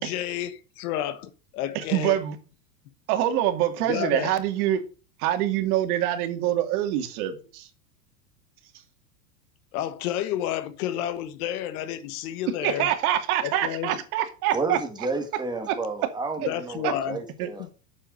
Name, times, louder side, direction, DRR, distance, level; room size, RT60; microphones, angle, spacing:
voice 1, 0.0-2.2 3.9-4.3 9.7-12.9 13.4-13.9 16.5-17.2, left 11 dB, 65° left, 1.5 m, -30 dB
voice 2, 1.7-2.4 3.1-4.8 5.2-7.7 12.6-14.8 15.7-15.8 16.8-16.9 17.4-17.5, right 12 dB, 65° right, 2.5 m, -25 dB
voice 3, 14.5-17.7, right 3 dB, 10° right, 2.6 m, -31 dB
8.8 x 7.4 x 6.6 m
supercardioid pair, 135°, 48 cm